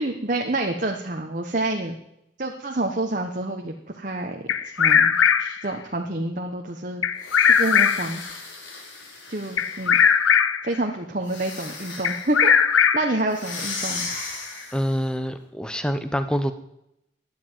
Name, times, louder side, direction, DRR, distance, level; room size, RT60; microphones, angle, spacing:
voice 1, 0.0-1.9 2.4-7.0 7.4-8.2 9.3-10.0 10.6-12.5 12.9-14.1, right 2 dB, 40° right, 2 dB, 1.3 m, -28 dB
Bird vocalization bird call bird song, 4.5-5.7 7.0-8.2 9.6-10.7 12.0-13.2, left 7 dB, 90° left, 0.8 m, -19 dB
sound 1, 7.2-10.1 11.2-12.4 13.3-15.0, left 3 dB, 70° left, 4.6 m, -36 dB
voice 2, 14.7-16.5, equal, 5° left, 9 dB, 1.0 m, -26 dB
13.5 x 10.5 x 9.3 m, 0.83 s
head